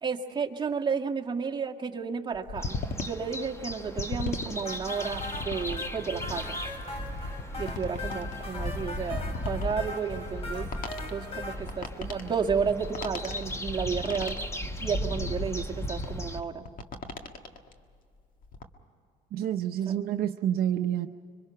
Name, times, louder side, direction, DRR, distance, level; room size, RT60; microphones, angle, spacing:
voice 1, 0.0-6.6 7.6-10.7 11.1-14.3 14.8-16.6 19.8-19.9, right 6 dB, 25° right, 0 dB, 1.7 m, -32 dB
sound 1, 2.3-17.8 18.2-18.6, left 4 dB, 55° left, 1.7 m, -39 dB
sound 2, 2.6-16.4, left 1 dB, 15° left, 1.3 m, -36 dB
sound 3, 4.7-11.6, left 2 dB, 35° left, 3.3 m, -40 dB
voice 2, 19.3-21.1, right 10 dB, 65° right, 6 dB, 0.7 m, -28 dB
26.5 x 24.0 x 5.7 m, 2.3 s
cardioid pair, 110°, 17 cm